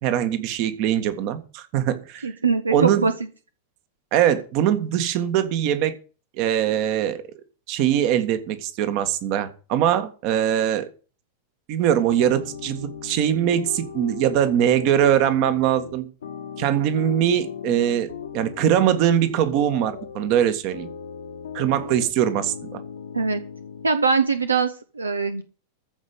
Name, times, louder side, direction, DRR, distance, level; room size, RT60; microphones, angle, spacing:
voice 1, 0.0-2.3 2.7-3.0 4.1-6.0 6.4-7.2 7.7-10.9 11.7-16.1 16.6-20.9 21.5-22.8, right 10 dB, 45° right, 11 dB, 1.8 m, -22 dB
voice 2, 2.2-3.1 23.1-23.4 23.8-25.4, right 4 dB, 75° right, 10 dB, 1.0 m, -22 dB
sound 1, 12.1-23.9, left 7 dB, 65° left, 1.4 m, -37 dB
14.5 x 5.5 x 8.1 m, 0.36 s
figure-of-eight pair, 90°, 0 cm